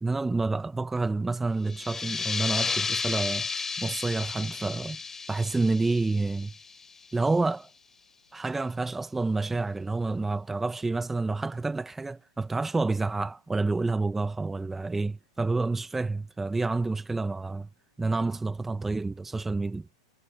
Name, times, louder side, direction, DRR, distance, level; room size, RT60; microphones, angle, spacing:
voice 1, 0.0-5.0 5.3-6.5 7.1-7.7 8.3-17.7 18.0-19.9, right 3 dB, 5° right, 0.8 m, -29 dB
sound 1, 1.6-7.0, left 4 dB, 10° left, 4.9 m, -33 dB
hypercardioid pair, 140°, 3 cm